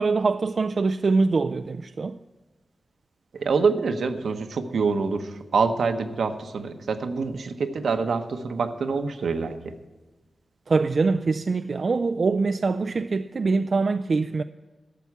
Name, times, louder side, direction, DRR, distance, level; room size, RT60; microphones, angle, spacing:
voice 1, 0.0-2.2 10.7-14.4, right 4 dB, 55° right, 0.3 m, -23 dB
voice 2, 3.3-9.7, right 4 dB, 85° right, 0.9 m, -26 dB
12.0 x 7.0 x 8.3 m
cardioid pair, 70°, 0 cm